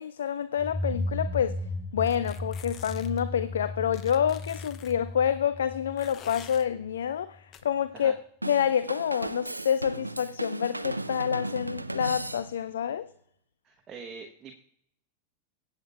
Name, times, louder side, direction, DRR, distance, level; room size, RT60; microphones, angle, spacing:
voice 1, 0.0-1.6 1.9-8.1 8.5-13.1, left 9 dB, 65° left, 0.4 m, -28 dB
sound 1, 0.6-7.1, left 2 dB, 10° left, 5.2 m, -35 dB
sound 2, 2.1-3.2 3.9-4.9 6.0-6.6 7.5-7.6, left 9 dB, 30° left, 0.8 m, -48 dB
Drum kit / Drum, 8.4-12.8, right 2 dB, 85° right, 0.4 m, -35 dB
voice 2, 13.6-14.6, right 5 dB, 25° right, 1.0 m, -44 dB
22.5 x 8.4 x 2.4 m
figure-of-eight pair, 90°, 0 cm